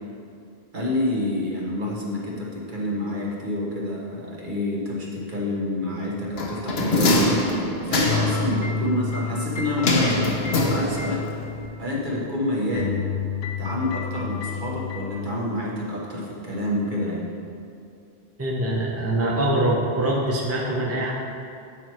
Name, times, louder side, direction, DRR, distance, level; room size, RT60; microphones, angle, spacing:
voice 1, 0.7-7.4 7.9-11.3 11.8-13.0 13.6-17.3, left 1 dB, 50° right, -4 dB, 1.4 m, -28 dB
sound 1, 6.4-8.5 9.8-11.3 11.6-11.7, left 2 dB, 80° left, 1.1 m, -23 dB
sound 2, 8.0-12.4 12.7-15.4, left 6 dB, 55° left, 0.7 m, -30 dB
voice 2, 18.4-21.1, right 1 dB, 15° right, -3 dB, 0.7 m, -23 dB
8.8 x 4.5 x 4.5 m, 2.4 s
omnidirectional pair, 1.0 m